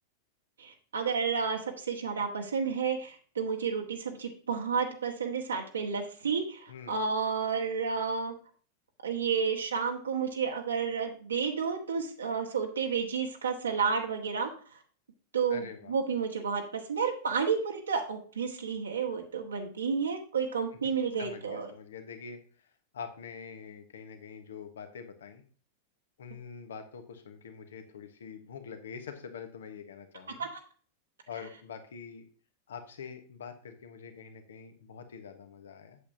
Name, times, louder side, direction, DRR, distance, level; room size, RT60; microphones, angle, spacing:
voice 1, 0.6-8.3 9.0-14.5 15.3-21.7 30.4-30.5, right 6 dB, 70° right, 2 dB, 1.3 m, -31 dB
voice 2, 6.7-7.0 15.5-15.9 20.8-22.7 22.9-25.4 26.2-30.5 31.3-32.2 32.7-36.0, left 6 dB, 65° left, 8 dB, 1.2 m, -45 dB
8.3 x 7.3 x 2.7 m, 0.41 s
figure-of-eight pair, 90°, 0 cm